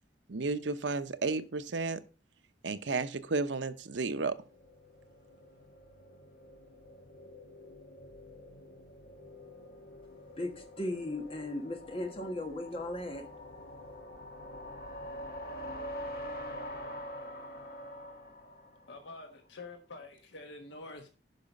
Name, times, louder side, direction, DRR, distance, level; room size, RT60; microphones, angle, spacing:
voice 1, 0.3-2.0 2.6-4.4, right 3 dB, 85° right, 0.8 m, -32 dB
sound 1, 4.4-19.2, left 1 dB, 55° left, 1.5 m, -46 dB
voice 2, 10.4-13.3, left 1 dB, 30° left, 1.5 m, -37 dB
voice 3, 18.9-21.1, left 3 dB, 80° left, 1.2 m, -47 dB
11.0 x 4.9 x 5.3 m
head